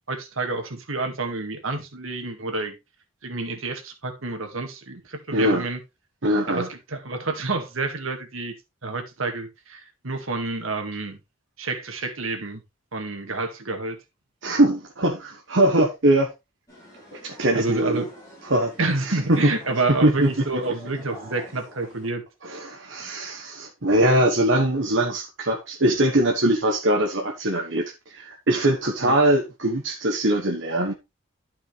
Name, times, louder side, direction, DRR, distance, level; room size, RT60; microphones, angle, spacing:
voice 1, 0.1-2.7 3.2-5.8 6.5-8.5 8.8-11.2 11.6-12.6 12.9-14.0 17.5-18.1 18.8-22.2 29.0-29.2, right 3 dB, 80° right, 2.0 m, -29 dB
voice 2, 5.3-5.6 6.2-6.7 14.4-16.3 17.1-18.0 18.4-18.7 19.0-19.5 20.0-20.3 22.4-30.9, right 1 dB, 65° right, 1.3 m, -22 dB
sound 1, 16.7-22.1, equal, 15° left, 6.5 m, -46 dB
12.0 x 5.6 x 3.3 m
head